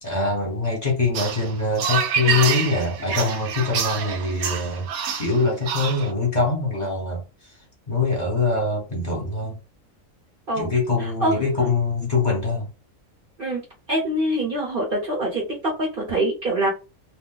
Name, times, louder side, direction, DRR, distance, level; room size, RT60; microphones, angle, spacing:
voice 1, 0.0-4.9 5.2-7.2 7.9-9.6 10.6-12.7, left 3 dB, 30° left, 1.1 m, -23 dB
sound 1, 1.1-6.1, right 7 dB, 85° right, 1.0 m, -27 dB
voice 2, 11.0-11.4 13.4-13.6 13.9-16.7, right 1 dB, 45° right, 0.9 m, -24 dB
2.8 x 2.1 x 3.8 m
omnidirectional pair, 1.5 m